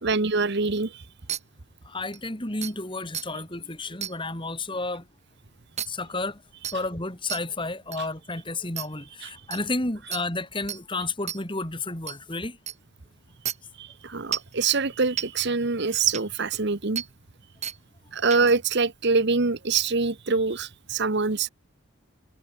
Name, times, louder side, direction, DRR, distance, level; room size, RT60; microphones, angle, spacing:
voice 1, 0.0-1.0 9.2-9.3 13.8-17.0 18.1-21.5, right 4 dB, 50° right, 1.1 m, -25 dB
sound 1, 1.3-1.4 2.1-2.2 2.6-2.7 3.1-3.3 4.0-4.1 5.8-5.9 6.6-6.8 7.3-7.4 7.9-8.0 8.8-8.9 9.5-9.6 10.1-10.2 10.7-10.8 11.3-11.4 12.1-12.2 12.7-12.8 13.5-13.6 14.3-14.5 15.2-15.3 16.1-16.2 17.0-17.1 17.6-17.8 18.3-18.5, right 10 dB, 30° right, 1.9 m, -31 dB
voice 2, 1.8-5.1 5.9-6.4 6.7-12.6 14.0-14.1, left 2 dB, 25° left, 3.4 m, -31 dB
head